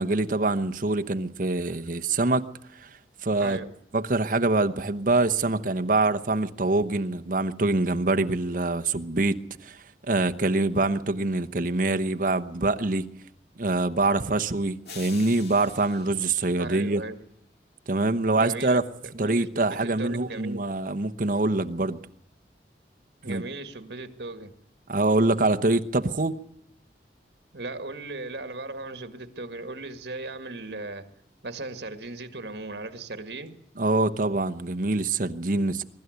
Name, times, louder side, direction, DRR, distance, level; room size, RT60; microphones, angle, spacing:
voice 1, 0.0-2.5 2.8-2.9 3.2-3.6 3.9-9.8 10.1-13.1 13.6-17.0 17.9-18.8 19.2-22.0 23.3-23.4 24.9-26.4 33.8-35.8, right 2 dB, 50° right, 1.0 m, -25 dB
voice 2, 3.4-3.7 16.6-17.2 18.4-20.6 23.2-24.5 27.5-31.1 31.4-33.6, right 2 dB, 65° right, 1.9 m, -37 dB
sound 1, 14.9-17.2, left 5 dB, 65° left, 2.2 m, -46 dB
23.0 x 12.5 x 9.4 m
head